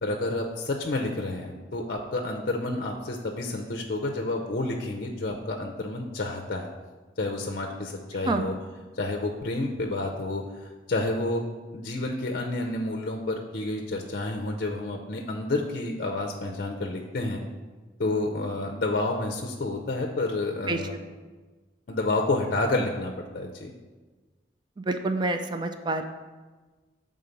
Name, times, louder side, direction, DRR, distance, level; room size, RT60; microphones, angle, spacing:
voice 1, 0.0-6.7 7.2-8.6 9.0-11.4 11.7-17.4 18.0-21.0 21.9-23.7, left 2 dB, 55° left, 2 dB, 0.6 m, -29 dB
voice 2, 24.8-26.0, right 2 dB, 25° right, 6 dB, 0.4 m, -27 dB
7.0 x 3.7 x 5.2 m, 1.3 s
head